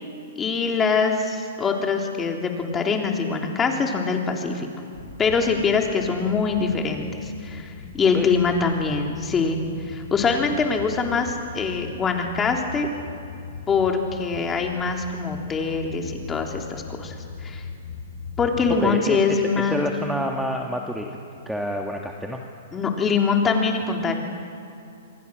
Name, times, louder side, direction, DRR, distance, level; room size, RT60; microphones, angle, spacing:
voice 1, 0.4-4.7 5.2-9.6 9.9-12.9 13.7-17.2 17.4-17.6 18.4-19.8 22.7-24.1, left 5 dB, 20° left, 2 dB, 3.3 m, -23 dB
sound 1, 4.9-18.8, left 5 dB, 70° left, 4.0 m, -39 dB
voice 2, 18.8-21.1 21.4-22.4, equal, ahead, 1 dB, 1.7 m, -28 dB
26.5 x 23.5 x 6.4 m, 2.6 s
hypercardioid pair, 120°, 0 cm